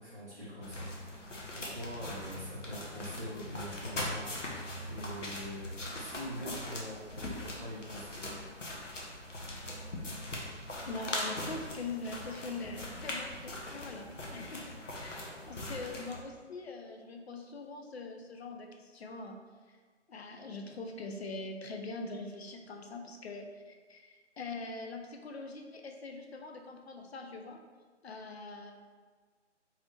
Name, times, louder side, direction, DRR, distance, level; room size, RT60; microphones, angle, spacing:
voice 1, 0.0-8.2, equal, 15° right, -14 dB, 0.5 m, -44 dB
sound 1, 0.6-16.2, left 1 dB, 90° left, 0.7 m, -41 dB
voice 2, 10.9-19.4 19.7-19.8 20.1-27.6 28.0-28.7, left 3 dB, 60° left, 3 dB, 0.5 m, -43 dB
3.2 x 2.7 x 2.4 m, 1.5 s
figure-of-eight pair, 150°, 36 cm